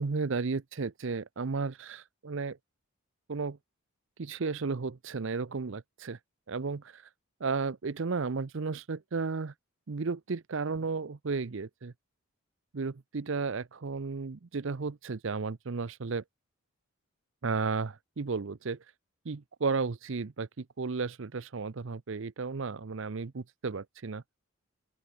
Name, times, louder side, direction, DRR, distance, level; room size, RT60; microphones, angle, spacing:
voice 1, 0.0-2.6 3.3-3.6 4.2-6.2 6.5-7.0 7.4-9.5 9.9-11.9 12.7-16.2 17.4-18.8 19.2-24.2, right 4 dB, 60° right, 0.6 m, -33 dB
open air
head